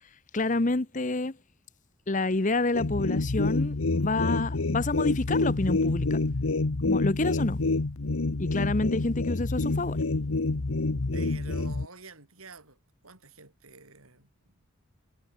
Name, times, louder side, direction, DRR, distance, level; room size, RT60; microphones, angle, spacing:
voice 1, 0.3-1.4 2.1-6.2 6.8-7.6 8.4-10.0, left 2 dB, 35° left, 0.9 m, -28 dB
sound 1, 2.7-11.9, left 3 dB, 80° left, 1.0 m, -27 dB
voice 2, 11.1-12.8 13.0-14.7, right 3 dB, 90° right, 7.2 m, -48 dB
head